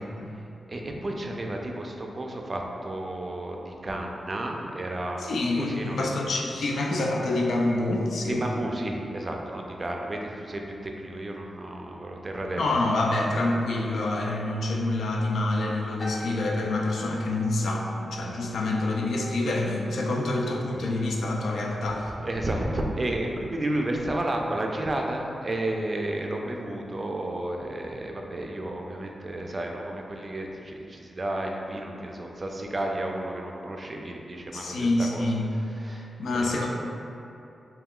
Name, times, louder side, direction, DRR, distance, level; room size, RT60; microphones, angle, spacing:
voice 1, 0.7-5.3 5.6-6.1 8.3-12.8 22.2-35.2 35.8-36.1, right 1 dB, 40° right, 1 dB, 0.4 m, -32 dB
voice 2, 5.2-8.5 12.6-22.1 34.5-35.5 36.0-36.7, left 2 dB, 80° left, 0 dB, 0.3 m, -27 dB
sound 1, 16.0-20.6 20.9-21.3, left 1 dB, 20° left, 0.5 m, -44 dB
2.3 x 2.2 x 3.6 m, 2.7 s
cardioid pair, 50°, 0 cm